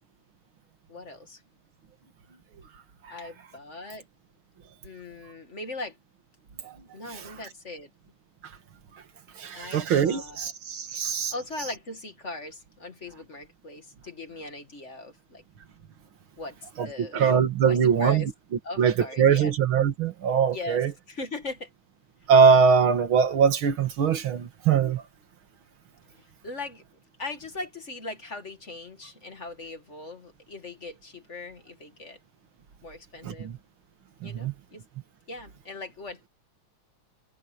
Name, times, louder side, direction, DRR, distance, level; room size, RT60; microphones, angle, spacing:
voice 1, 0.9-1.4 3.1-4.1 4.8-6.0 6.9-7.9 9.5-10.5 10.9-15.4 16.4-16.6 16.8-17.4 17.6-18.3 18.6-19.5 20.5-21.7 26.1-26.8 27.2-32.2 32.8-33.5 34.2-34.8 35.3-36.3, left 2 dB, 35° left, 2.3 m, -39 dB
voice 2, 9.4-11.3 16.8-18.2 18.8-20.9 22.3-25.0 33.2-33.6 34.2-34.5, right 6 dB, 85° right, 2.5 m, -22 dB
omnidirectional pair, 2.2 m